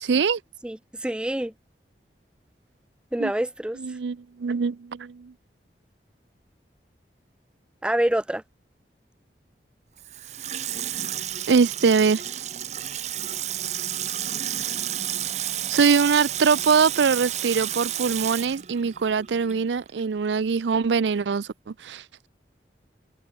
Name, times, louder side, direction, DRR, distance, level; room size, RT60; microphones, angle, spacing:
voice 1, 0.0-0.4 3.2-3.3 3.8-5.3 11.5-12.2 15.7-22.3, right 5 dB, 85° right, 0.5 m, -23 dB
voice 2, 0.6-1.5 3.1-3.8 7.8-8.4, right 1 dB, 5° right, 0.3 m, -26 dB
Water tap faucet / Sink (filling or washing), 10.0-19.7 20.0-20.1, right 11 dB, 40° right, 0.8 m, -31 dB
open air
head